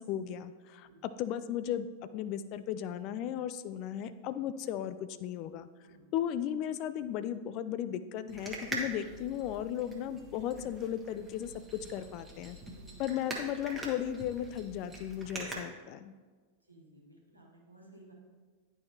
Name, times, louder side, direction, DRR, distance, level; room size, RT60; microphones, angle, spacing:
voice 1, 0.0-1.9 2.1-5.7 6.1-12.6 13.0-16.1, left 10 dB, 40° left, 13 dB, 0.3 m, -36 dB
sound 1, 8.3-15.6, right 2 dB, 15° right, 1.2 m, -44 dB
voice 2, 12.7-13.2 16.7-18.1, right 1 dB, 90° right, -3 dB, 1.4 m, -57 dB
10.0 x 4.7 x 2.8 m, 1.4 s
figure-of-eight pair, 90°, 0 cm